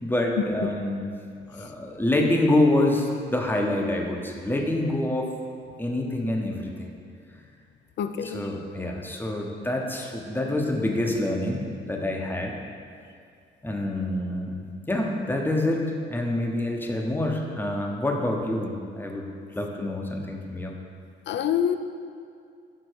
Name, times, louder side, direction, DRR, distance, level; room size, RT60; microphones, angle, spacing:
voice 1, 0.0-1.1 1.5-5.3 5.8-6.9 8.2-12.5 13.6-19.3 19.5-20.7, left 1 dB, 10° left, 1 dB, 0.8 m, -26 dB
voice 2, 8.0-8.4 21.3-21.8, left 9 dB, 65° left, 9 dB, 0.4 m, -26 dB
6.5 x 3.9 x 4.6 m, 2.4 s
cardioid pair, 90°, 20 cm